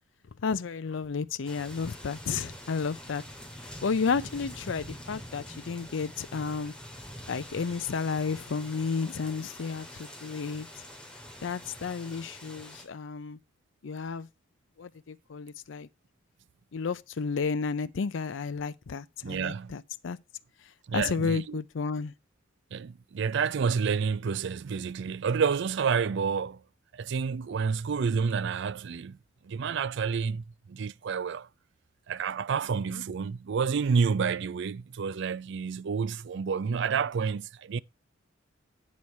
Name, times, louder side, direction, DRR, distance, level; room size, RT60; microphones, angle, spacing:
voice 1, 0.4-3.2 3.8-6.7 7.3-10.7 11.4-13.4 13.8-14.3 14.8-15.9 16.7-20.2 20.9-22.1, left 5 dB, 70° left, 0.5 m, -32 dB
sound 1, 1.4-12.9, equal, 5° left, 2.2 m, -45 dB
voice 2, 19.2-19.8 20.9-21.6 22.7-26.6 26.9-29.2 29.4-31.5 32.1-37.8, right 6 dB, 65° right, 0.4 m, -29 dB
8.6 x 6.2 x 5.3 m
head